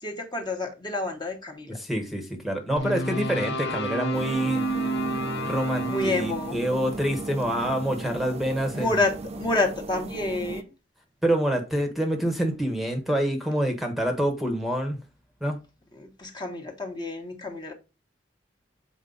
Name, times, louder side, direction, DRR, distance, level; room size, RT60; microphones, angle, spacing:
voice 1, 0.0-1.8 5.9-6.6 8.7-10.7 15.9-17.7, left 2 dB, 25° left, 1.2 m, -29 dB
voice 2, 1.8-4.6 5.5-8.9 11.2-15.0 15.4-15.6, equal, ahead, 1.1 m, -26 dB
sound 1, 2.8-9.0, right 1 dB, 65° left, 0.9 m, -31 dB
sound 2, 4.1-10.6, right 3 dB, 35° right, 0.5 m, -37 dB
7.2 x 4.5 x 3.9 m
head